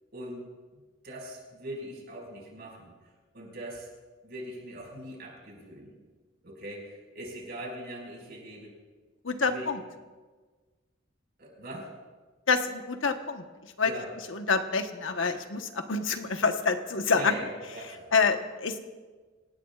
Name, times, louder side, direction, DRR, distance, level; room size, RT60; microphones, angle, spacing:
voice 1, 0.1-2.9 3.3-3.9 4.2-6.0 6.4-8.8 9.5-9.7 11.4-12.0 13.8-14.1 17.1-18.3, right 1 dB, 55° right, 0 dB, 5.1 m, -41 dB
voice 2, 9.2-9.8 12.5-13.4 13.8-13.9 14.3-17.3 18.1-18.8, left 5 dB, 85° left, 6 dB, 1.1 m, -27 dB
27.5 x 17.0 x 2.4 m, 1.4 s
head